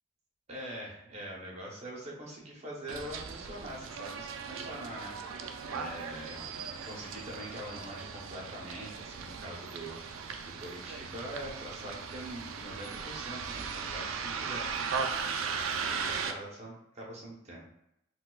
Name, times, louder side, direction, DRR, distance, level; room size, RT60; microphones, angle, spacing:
voice 1, 0.5-6.6 6.9-10.3 10.6-14.7 15.7-17.6, right 1 dB, 35° right, -3 dB, 0.9 m, -43 dB
Bus, 2.9-16.3, right 5 dB, 90° right, 0.4 m, -38 dB
4.2 x 2.3 x 2.3 m, 0.81 s
head